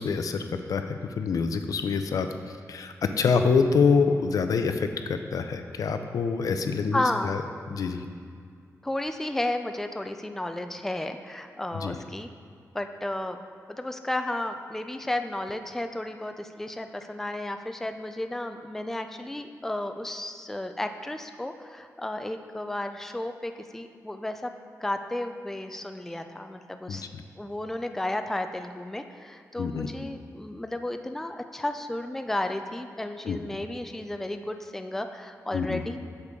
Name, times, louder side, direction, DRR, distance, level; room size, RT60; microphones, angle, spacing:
voice 1, 0.0-7.4 7.7-8.0 11.7-12.0 26.9-27.2 29.6-29.9 33.2-33.4 35.5-35.8, left 5 dB, 75° left, 7 dB, 0.5 m, -26 dB
voice 2, 6.9-7.3 8.8-12.3 12.7-13.4 13.7-24.5 24.8-27.1 27.4-36.0, left 1 dB, 5° left, 7 dB, 0.3 m, -33 dB
8.3 x 6.6 x 3.6 m, 2.2 s
wide cardioid pair, 135°, 6 cm